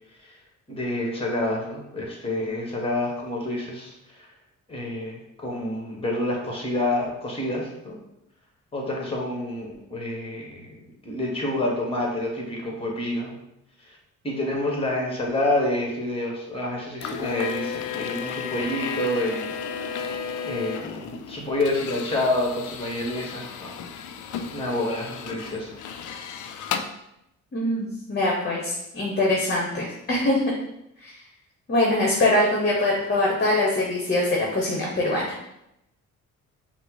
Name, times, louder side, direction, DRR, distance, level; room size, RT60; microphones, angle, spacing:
voice 1, 0.7-3.9 4.7-8.0 8.7-10.8 11.0-13.3 13.9-14.0 14.2-20.0 20.4-23.7 24.5-25.7, left 1 dB, 20° left, -1 dB, 1.3 m, -28 dB
sound 1, 17.0-26.9, left 7 dB, 75° left, 0.5 m, -33 dB
voice 2, 27.5-30.4 31.0-31.1 31.7-35.3, left 1 dB, 35° left, -3 dB, 1.0 m, -23 dB
5.4 x 2.1 x 4.0 m, 0.83 s
cardioid pair, 90°, 30 cm